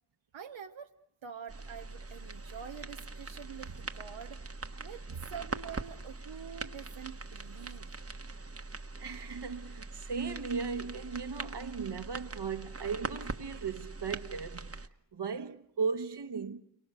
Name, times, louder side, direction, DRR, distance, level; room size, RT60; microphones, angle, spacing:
voice 1, 0.3-0.9 1.2-7.9 8.5-8.6, right 8 dB, 90° right, 0.9 m, -46 dB
sound 1, 1.5-14.9, right 3 dB, 30° right, 1.2 m, -42 dB
voice 2, 9.0-14.8 15.1-16.6, right 5 dB, 60° right, 1.3 m, -37 dB
29.5 x 23.5 x 6.7 m
cardioid pair, 50°, 45 cm